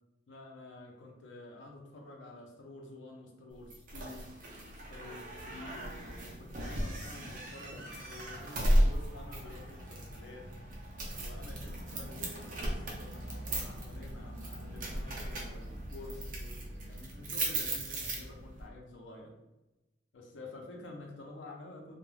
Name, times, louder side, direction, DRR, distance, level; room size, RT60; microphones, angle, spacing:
voice 1, 0.3-4.3 4.7-10.5 11.2-19.3 20.1-22.0, left 2 dB, 85° left, 1 dB, 0.6 m, -50 dB
sound 1, 3.7-18.7, right 1 dB, 50° right, 0.6 m, -35 dB
2.2 x 2.2 x 3.1 m, 1.0 s
head